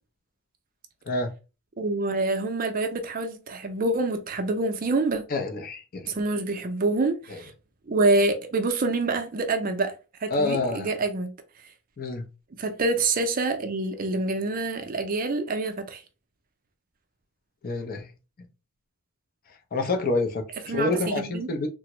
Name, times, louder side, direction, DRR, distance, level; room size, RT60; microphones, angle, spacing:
voice 1, 1.8-5.2 6.1-7.5 7.9-9.9 10.2-11.3 12.6-16.0 20.7-21.5, right 2 dB, 40° right, 0.4 m, -26 dB
voice 2, 5.3-6.1 7.3-7.4 10.3-10.9 12.0-12.2 17.6-18.1 19.7-21.7, left 2 dB, 40° left, 0.5 m, -28 dB
3.4 x 2.0 x 2.9 m
head